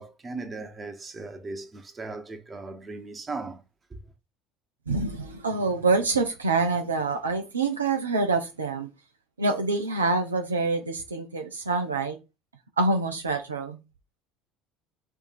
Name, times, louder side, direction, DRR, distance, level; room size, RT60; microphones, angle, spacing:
voice 1, 0.0-3.6 3.9-4.0, right 3 dB, 25° right, 1.1 m, -38 dB
voice 2, 4.9-8.9 9.4-12.2 12.8-13.8, right 3 dB, 85° right, 0.5 m, -26 dB
4.5 x 2.6 x 4.4 m
figure-of-eight pair, 65°, 0 cm